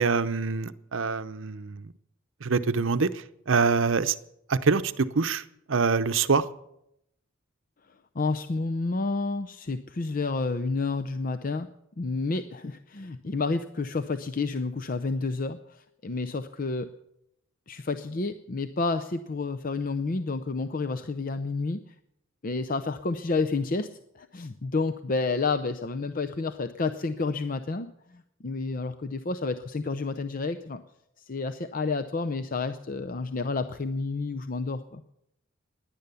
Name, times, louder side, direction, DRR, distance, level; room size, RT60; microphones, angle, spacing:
voice 1, 0.0-1.9 2.4-4.1 4.5-5.4 5.7-6.4, right 4 dB, 70° right, 12 dB, 0.7 m, -25 dB
voice 2, 8.1-11.7 12.0-16.9 17.7-21.8 22.4-30.8 31.2-35.0, left 3 dB, 40° left, 10 dB, 0.6 m, -30 dB
17.0 x 10.5 x 7.0 m, 0.80 s
head